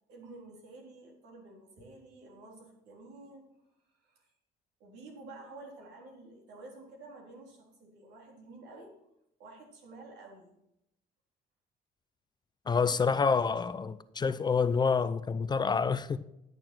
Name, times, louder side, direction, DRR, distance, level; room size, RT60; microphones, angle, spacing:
voice 1, 0.1-3.4 4.0-4.3 4.8-9.0 9.4-10.5, right 2 dB, 85° right, 3.6 m, -50 dB
voice 2, 12.7-16.2, left 5 dB, 25° left, 0.5 m, -27 dB
10.5 x 6.9 x 6.0 m
cardioid pair, 110°, 17 cm